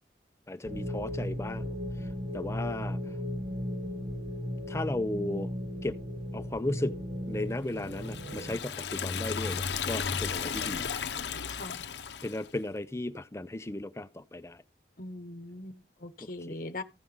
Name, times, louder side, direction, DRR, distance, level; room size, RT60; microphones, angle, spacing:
voice 1, 0.5-1.8 2.3-3.0 4.7-5.5 5.8-6.0 6.3-7.0 7.3-10.9 12.2-14.6 16.2-16.6, left 2 dB, 15° left, 0.5 m, -35 dB
sound 1, 0.6-8.6, equal, 50° right, 1.7 m, -36 dB
Liquid, 7.8-12.5, left 6 dB, 80° left, 0.7 m, -34 dB
voice 2, 11.5-11.8 15.0-16.8, left 2 dB, 50° left, 0.9 m, -41 dB
15.5 x 5.5 x 3.4 m
head